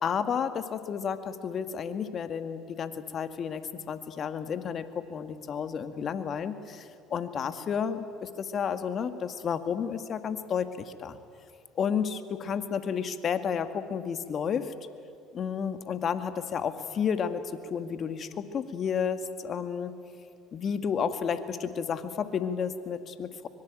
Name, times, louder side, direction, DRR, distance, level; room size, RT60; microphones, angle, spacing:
voice 1, 0.0-11.2 11.8-14.7 15.3-19.9 20.5-23.5, left 7 dB, 45° left, 10 dB, 1.9 m, -31 dB
24.5 x 23.5 x 9.2 m, 2.4 s
hypercardioid pair, 70°, 0 cm